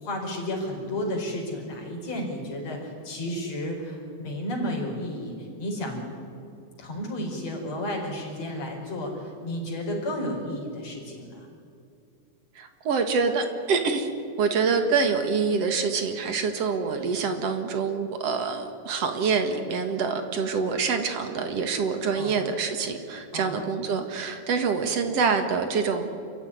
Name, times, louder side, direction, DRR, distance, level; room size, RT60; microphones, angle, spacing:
voice 1, 0.0-6.1 6.8-11.5 22.2-22.4 23.3-23.6, left 1 dB, 45° left, -1 dB, 5.9 m, -32 dB
voice 2, 12.6-14.1 14.4-26.0, right 5 dB, 50° right, 7 dB, 2.3 m, -26 dB
27.0 x 15.0 x 9.9 m, 2.6 s
omnidirectional pair, 4.3 m